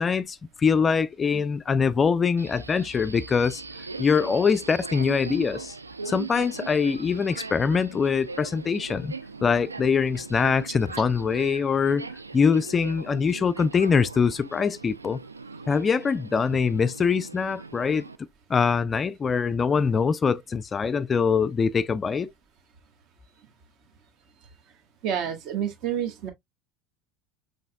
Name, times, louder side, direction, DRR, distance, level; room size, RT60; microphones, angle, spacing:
voice 1, 0.0-3.6 4.0-5.7 6.1-9.1 9.4-12.1 12.3-15.2 15.7-18.1 18.5-22.3, left 5 dB, 25° left, 0.3 m, -23 dB
Subway metro underground, 2.4-18.2, right 4 dB, 85° right, 0.3 m, -40 dB
voice 2, 25.0-26.3, right 9 dB, 45° right, 1.4 m, -29 dB
6.1 x 3.2 x 2.2 m
figure-of-eight pair, 75°, 0 cm